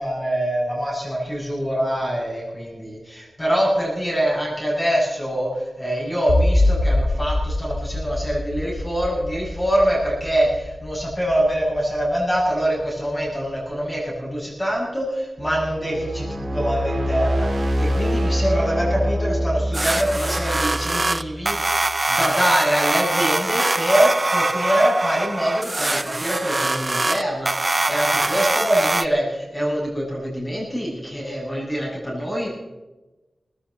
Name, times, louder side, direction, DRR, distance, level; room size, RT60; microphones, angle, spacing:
voice 1, 0.0-32.5, equal, 15° left, -5 dB, 7.1 m, -24 dB
sound 1, 6.3-13.5, left 1 dB, 85° left, 3.3 m, -25 dB
sound 2, 15.4-21.6, equal, 75° right, 4.1 m, -25 dB
sound 3, 19.7-29.1, right 2 dB, 25° right, 0.5 m, -23 dB
19.5 x 16.0 x 4.3 m, 1.1 s
wide cardioid pair, 115°, 0 cm